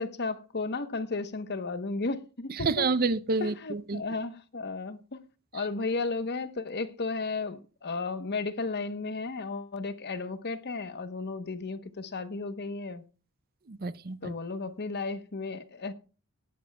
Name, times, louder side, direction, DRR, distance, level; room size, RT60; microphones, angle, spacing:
voice 1, 0.0-2.9 3.4-5.3 5.5-13.0 14.2-15.9, left 3 dB, 50° left, 1.0 m, -34 dB
voice 2, 2.5-4.0 5.5-5.6 13.7-14.3, right 4 dB, 45° right, 0.6 m, -29 dB
18.0 x 12.0 x 2.3 m
head